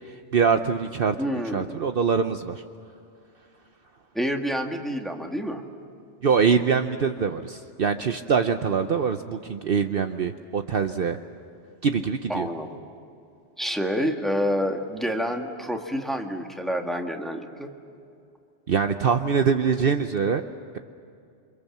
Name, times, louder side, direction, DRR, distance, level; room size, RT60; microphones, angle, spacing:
voice 1, 0.3-1.1 1.5-2.6 6.2-11.2 11.8-12.5 18.7-20.4, right 6 dB, 55° right, 7 dB, 0.9 m, -23 dB
voice 2, 1.2-1.8 4.1-5.6 12.3-12.8 13.6-17.7, equal, ahead, 3 dB, 1.8 m, -28 dB
28.5 x 25.0 x 7.3 m, 2.5 s
omnidirectional pair, 1.2 m